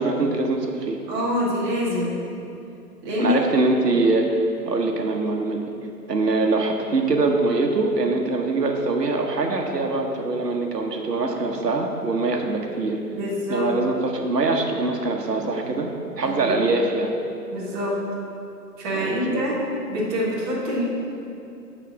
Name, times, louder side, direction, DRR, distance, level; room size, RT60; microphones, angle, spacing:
voice 1, 0.0-1.0 3.2-5.7 6.1-13.0 13.5-15.9 16.2-17.1 18.9-19.4, right 3 dB, 75° right, 3 dB, 1.1 m, -23 dB
voice 2, 1.1-2.2 3.0-3.4 13.1-13.7 16.2-16.5 17.5-18.0 18.8-19.6 19.9-20.8, equal, 15° right, -5 dB, 0.9 m, -25 dB
9.1 x 4.1 x 5.9 m, 2.7 s
figure-of-eight pair, 135°, 49 cm